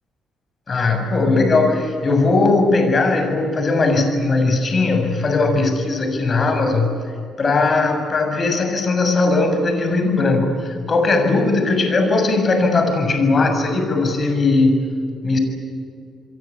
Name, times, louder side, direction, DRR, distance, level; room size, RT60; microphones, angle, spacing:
voice 1, 0.7-6.9 7.4-14.8 15.2-15.4, left 3 dB, 40° left, 6 dB, 7.1 m, -18 dB
28.5 x 23.0 x 8.6 m, 2.4 s
cardioid pair, 90°, 0 cm